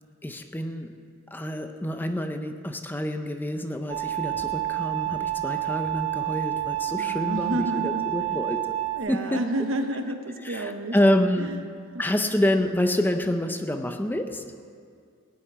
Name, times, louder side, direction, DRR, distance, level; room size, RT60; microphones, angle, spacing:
voice 1, 0.2-1.0 1.3-8.8 9.1-9.4 10.4-11.6 12.0-14.5, left 1 dB, 10° left, 7 dB, 0.6 m, -27 dB
sound 1, 3.9-9.0, right 14 dB, 30° right, 1.9 m, -29 dB
voice 2, 6.9-8.3 9.0-11.0 11.4-11.6 11.9-12.0, right 1 dB, 70° right, 6 dB, 1.1 m, -30 dB
17.0 x 6.7 x 9.3 m, 2.2 s
head